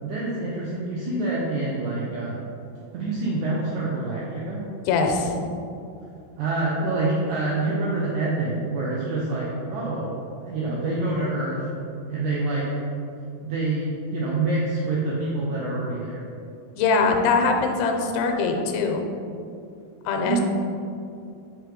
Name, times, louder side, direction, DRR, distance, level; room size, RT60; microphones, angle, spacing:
voice 1, 0.0-2.4 2.9-4.6 6.4-11.6 12.1-12.8 13.4-16.2 20.1-20.4, right 2 dB, 80° right, -5 dB, 1.7 m, -26 dB
voice 2, 4.9-5.4 16.8-19.0 20.1-20.4, left 4 dB, 90° left, 4 dB, 2.5 m, -22 dB
6.0 x 3.2 x 5.0 m, 2.5 s
omnidirectional pair, 4.3 m